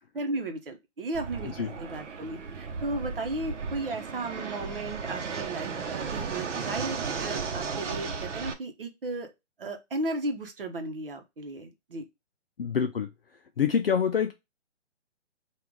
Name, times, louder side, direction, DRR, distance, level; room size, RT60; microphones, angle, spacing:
voice 1, 0.1-9.3 9.6-12.0, right 2 dB, 50° right, 0.9 m, -35 dB
Fixed-wing aircraft airplane, 1.1-8.5, right 5 dB, 85° right, 0.9 m, -35 dB
voice 2, 12.6-13.1 13.6-14.3, left 7 dB, 55° left, 0.5 m, -25 dB
3.8 x 2.5 x 4.5 m
hypercardioid pair, 175°, 35 cm